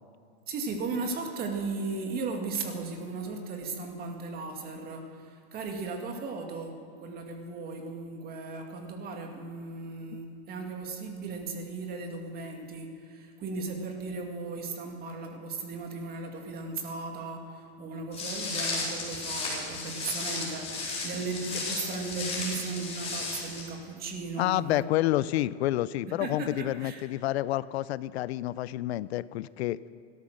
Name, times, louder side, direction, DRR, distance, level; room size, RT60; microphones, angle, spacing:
voice 1, 0.5-24.9 26.1-27.0, right 3 dB, 30° right, 3 dB, 2.0 m, -36 dB
Walk footsteps, 18.1-23.6, left 3 dB, 20° left, 4.3 m, -34 dB
voice 2, 24.4-29.8, left 15 dB, 75° left, 19 dB, 0.5 m, -29 dB
17.0 x 13.0 x 6.4 m, 2.3 s
supercardioid pair, 140°, 32 cm